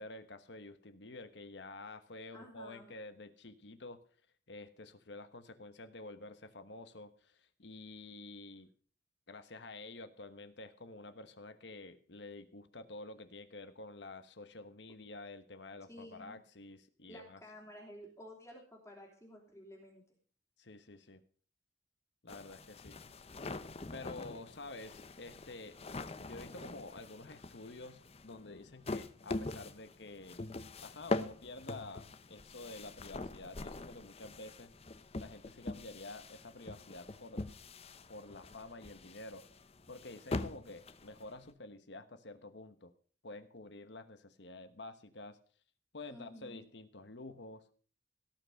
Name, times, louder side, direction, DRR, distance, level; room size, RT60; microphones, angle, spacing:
voice 1, 0.0-4.0 4.5-8.7 9.3-17.4 20.6-21.2 22.2-23.0 23.9-25.8 26.2-30.5 30.8-34.7 35.2-37.5 38.1-39.4 39.9-42.9 43.2-45.4 45.9-47.6, left 2 dB, 70° left, 11 dB, 1.2 m, -49 dB
voice 2, 2.3-2.9 15.9-16.4 17.1-20.0 46.1-46.6, left 1 dB, 15° left, -1 dB, 3.3 m, -52 dB
sound 1, 22.3-41.5, left 2 dB, 35° left, 0.7 m, -43 dB
17.5 x 6.0 x 6.5 m, 0.43 s
head